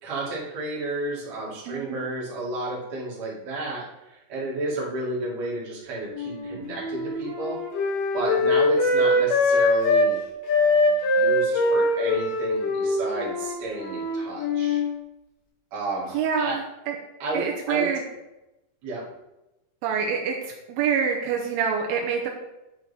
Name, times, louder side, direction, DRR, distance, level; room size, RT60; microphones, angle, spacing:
voice 1, 0.0-7.6 8.1-10.2 10.9-14.8 15.7-16.6 17.2-17.9 18.8-19.1, right 2 dB, 50° right, -6 dB, 3.1 m, -32 dB
voice 2, 1.7-2.1 16.1-17.0 17.3-18.0 19.8-22.3, right 7 dB, 85° right, 1 dB, 2.2 m, -26 dB
Wind instrument woodwind instrument, 6.1-10.1 10.5-14.9, left 2 dB, 65° left, 3.4 m, -22 dB
9.5 x 4.6 x 4.2 m, 0.96 s
omnidirectional pair, 4.9 m